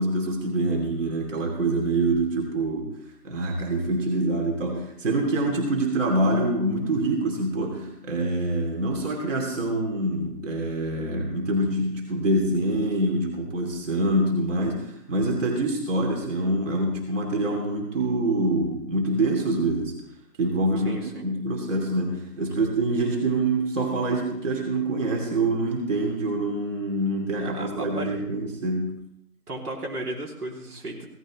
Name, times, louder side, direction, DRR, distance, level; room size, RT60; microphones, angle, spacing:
voice 1, 0.0-2.9 3.2-19.9 20.4-21.0 21.2-29.0, right 2 dB, 50° right, 1 dB, 2.8 m, -25 dB
voice 2, 20.8-21.2 23.0-23.1 27.4-28.1 29.5-31.1, right 1 dB, 70° right, 0 dB, 3.0 m, -34 dB
16.5 x 14.0 x 3.1 m, 0.76 s
hypercardioid pair, 165°, 47 cm